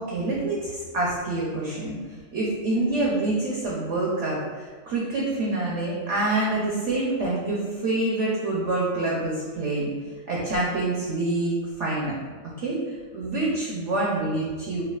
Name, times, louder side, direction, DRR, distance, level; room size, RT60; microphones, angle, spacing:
voice 1, 0.0-9.9 10.3-12.1 12.6-14.8, right 2 dB, 65° right, -4 dB, 0.7 m, -26 dB
4.6 x 2.3 x 2.3 m, 1.5 s
omnidirectional pair, 1.8 m